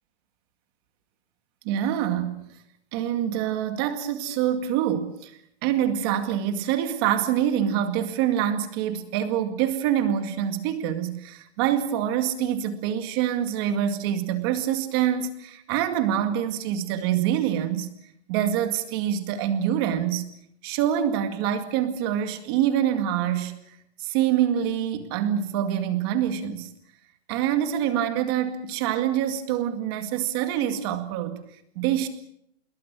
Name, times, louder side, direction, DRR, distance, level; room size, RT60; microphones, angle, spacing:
voice 1, 1.6-2.5 2.9-5.3 5.6-17.9 18.3-20.3 20.6-23.6 24.0-26.7 27.3-31.4 31.8-32.1, right 10 dB, 20° right, 2.1 m, -25 dB
26.0 x 22.5 x 6.2 m
hypercardioid pair, 175°, 33 cm